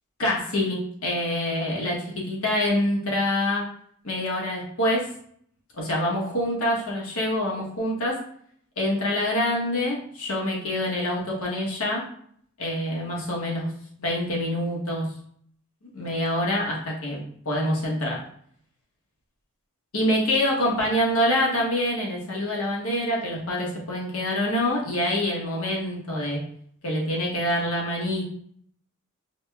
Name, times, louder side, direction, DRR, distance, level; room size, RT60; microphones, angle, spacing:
voice 1, 0.2-3.6 4.0-5.1 5.8-8.2 8.8-12.0 12.6-13.7 14.0-15.1 15.8-18.2 19.9-26.4 26.8-28.2, left 1 dB, 70° left, -3 dB, 1.1 m, -26 dB
4.8 x 2.3 x 2.3 m, 0.62 s
head